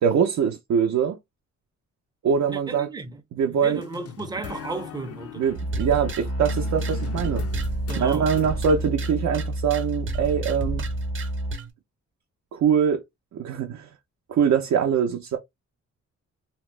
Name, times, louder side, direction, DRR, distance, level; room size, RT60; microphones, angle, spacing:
voice 1, 0.0-1.2 2.2-2.9 3.4-3.8 5.4-7.5 8.0-10.8 12.5-13.0 13.3-13.9 14.3-15.4, right 7 dB, 70° right, 0.6 m, -23 dB
voice 2, 2.5-5.5 7.9-8.3, right 3 dB, 15° right, 0.5 m, -34 dB
sound 1, 3.8-8.7, left 9 dB, 55° left, 0.4 m, -40 dB
sound 2, 5.5-11.7, right 1 dB, 45° right, 0.8 m, -29 dB
2.8 x 2.0 x 3.1 m
wide cardioid pair, 125°, 29 cm